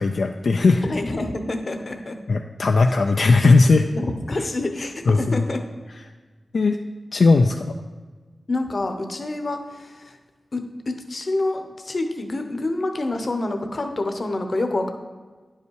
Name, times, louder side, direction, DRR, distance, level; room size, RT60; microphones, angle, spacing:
voice 1, 0.0-0.8 2.3-3.9 5.1-5.4 6.5-6.8 7.1-7.7, left 3 dB, 65° left, 4 dB, 0.4 m, -17 dB
voice 2, 0.8-2.2 3.9-5.6 8.5-10.2 10.5-14.9, left 2 dB, 45° left, 6 dB, 0.8 m, -27 dB
10.0 x 5.5 x 4.7 m, 1.4 s
wide cardioid pair, 120°, 0 cm